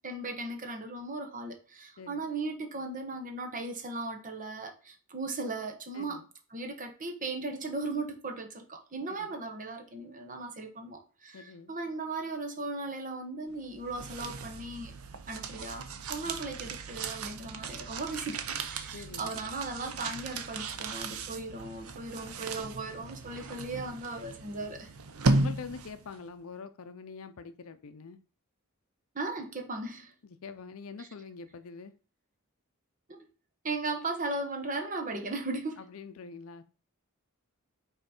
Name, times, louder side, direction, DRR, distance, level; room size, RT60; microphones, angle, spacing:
voice 1, 0.0-6.2 6.5-14.9 15.3-24.9 29.1-30.1 31.0-31.1 33.1-33.3 33.6-35.8, right 3 dB, 40° right, 1.1 m, -37 dB
voice 2, 5.9-6.3 9.1-9.3 11.3-11.7 16.2-16.4 18.9-19.3 25.3-28.2 30.2-31.9 35.8-36.6, left 5 dB, 70° left, 0.5 m, -45 dB
sound 1, 13.6-26.2, right 3 dB, 80° right, 0.7 m, -35 dB
5.6 x 4.1 x 4.3 m
head